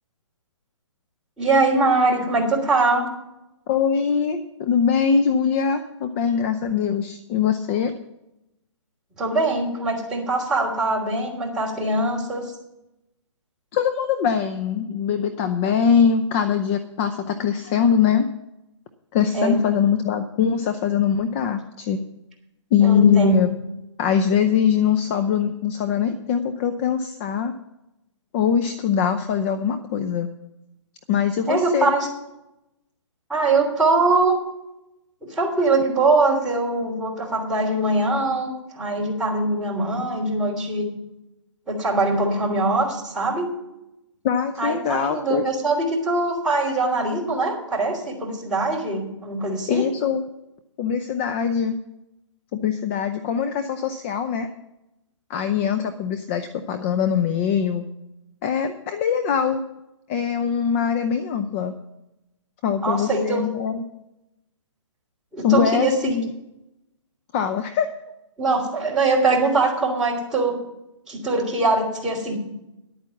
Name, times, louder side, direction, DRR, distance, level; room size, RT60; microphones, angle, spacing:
voice 1, 1.4-3.0 9.2-12.4 19.3-19.6 22.8-23.4 31.5-32.1 33.3-34.4 35.2-38.5 38.7-40.9 41.7-43.5 44.6-49.8 62.8-63.4 65.3-66.2 68.4-70.5 71.1-72.4, right 2 dB, 5° right, -6 dB, 3.3 m, -22 dB
voice 2, 3.7-7.9 13.7-18.3 19.1-22.0 22.7-23.5 24.0-27.5 28.3-30.3 31.1-31.9 44.2-45.5 49.7-50.2 50.8-51.8 52.5-54.5 55.3-57.9 58.4-59.6 60.1-61.7 62.6-63.8 65.4-66.3 67.3-67.9, left 7 dB, 25° left, 8 dB, 0.6 m, -22 dB
11.0 x 9.0 x 7.1 m, 0.90 s
hypercardioid pair, 155°, 16 cm